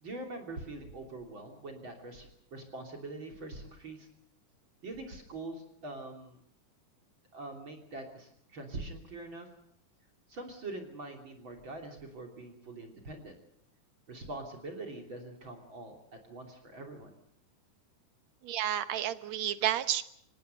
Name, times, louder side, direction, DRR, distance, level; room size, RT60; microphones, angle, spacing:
voice 1, 0.0-4.1 4.8-6.4 7.3-9.5 10.3-13.4 14.1-16.0 16.2-17.1, right 2 dB, 40° right, 2 dB, 3.6 m, -43 dB
voice 2, 18.4-20.0, right 11 dB, 65° right, 12 dB, 2.1 m, -31 dB
25.5 x 18.5 x 6.7 m, 0.69 s
omnidirectional pair, 3.6 m